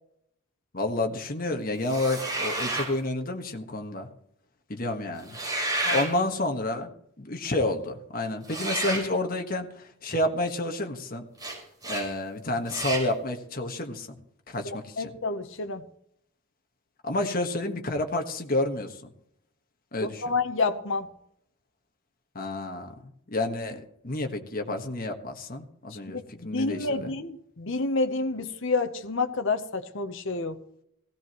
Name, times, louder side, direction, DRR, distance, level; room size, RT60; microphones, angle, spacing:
voice 1, 0.7-4.1 4.7-5.4 5.9-6.9 7.2-11.2 11.8-14.2 14.5-15.1 17.0-19.0 19.9-20.2 22.3-22.9 23.3-27.1, left 2 dB, 40° left, 4 dB, 1.4 m, -30 dB
sound 1, 1.9-2.9 5.2-6.1 8.5-9.1 11.4-11.6 11.8-12.1 12.7-13.1, right 2 dB, 20° right, 5.2 m, -30 dB
voice 2, 14.6-15.8 20.0-21.1 25.9-26.2 26.5-30.6, left 3 dB, 60° left, 8 dB, 0.9 m, -29 dB
17.0 x 16.5 x 3.1 m, 0.72 s
head